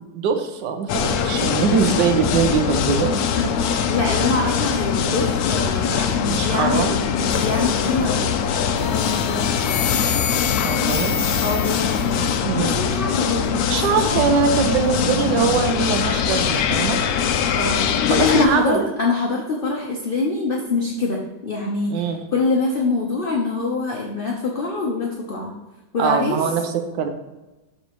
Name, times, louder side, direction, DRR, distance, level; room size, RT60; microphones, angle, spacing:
voice 1, 0.1-3.1 6.3-7.0 10.6-11.4 12.4-12.8 13.7-17.0 18.1-18.9 21.9-22.2 26.0-27.1, right 6 dB, 70° right, 6 dB, 1.4 m, -22 dB
sound 1, 0.9-18.5, left 7 dB, 70° left, 1.0 m, -22 dB
voice 2, 3.3-8.3 8.7-9.8 11.4-12.2 12.6-14.7 17.5-17.9 18.2-25.5 25.9-26.4, left 3 dB, 40° left, -1 dB, 0.8 m, -25 dB
sound 2, 7.3-8.2 8.7-12.4, left 8 dB, 85° left, 0.6 m, -29 dB
12.5 x 4.2 x 3.0 m, 1.1 s
omnidirectional pair, 2.0 m